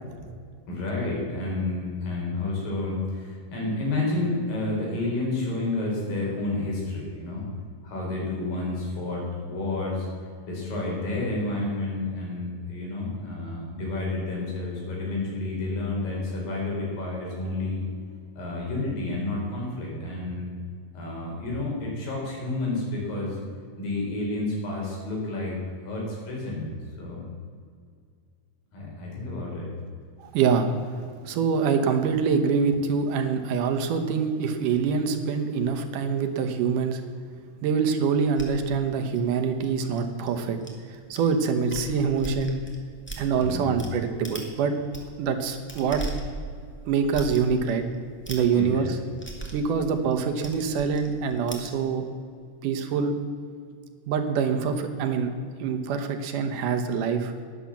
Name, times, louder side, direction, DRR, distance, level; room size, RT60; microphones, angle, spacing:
voice 1, 0.7-7.4 7.8-10.1 10.5-17.8 18.4-20.5 20.9-23.4 23.8-25.6 25.8-26.7 27.0-27.2 28.7-29.7 43.4-43.7 48.5-48.9, left 2 dB, 85° left, -3 dB, 5.8 m, -30 dB
voice 2, 30.2-30.7 31.2-37.0 37.6-40.6 40.9-42.6 43.2-44.8 45.2-46.0 46.9-47.8 48.3-49.0 49.5-52.0 52.6-53.2 54.1-55.3 55.6-57.3, right 6 dB, 75° right, 6 dB, 2.5 m, -25 dB
sound 1, 38.4-40.7 41.1-41.3 41.6-43.9 44.2-44.5 44.8-51.7, right 2 dB, 5° left, 1.0 m, -39 dB
11.5 x 10.5 x 7.2 m, 2.2 s
omnidirectional pair, 3.9 m